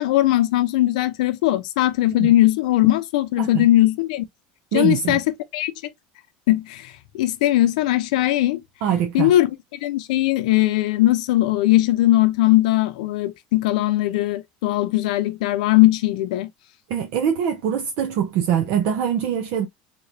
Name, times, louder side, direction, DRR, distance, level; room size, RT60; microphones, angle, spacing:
voice 1, 0.0-4.2 4.7-5.7 6.5-8.6 9.1-16.5, left 15 dB, 85° left, 0.6 m, -19 dB
voice 2, 4.7-5.2 8.8-9.3 16.9-19.7, right 8 dB, 70° right, 0.7 m, -23 dB
3.7 x 2.9 x 2.6 m
supercardioid pair, 130°, 4 cm